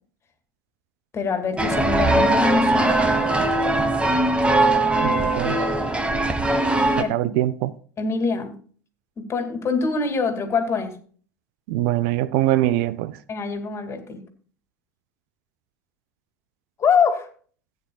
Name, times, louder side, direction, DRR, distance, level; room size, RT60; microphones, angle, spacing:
voice 1, 1.1-3.1 7.0-7.1 8.0-8.6 9.2-11.0 13.3-14.2 16.8-17.3, left 5 dB, 30° left, 2.4 m, -24 dB
sound 1, 1.6-7.0, right 2 dB, 10° right, 1.4 m, -20 dB
voice 2, 5.0-5.6 7.0-7.7 11.7-13.2, right 14 dB, 55° right, 0.6 m, -23 dB
16.0 x 9.4 x 2.4 m
figure-of-eight pair, 75°, 9 cm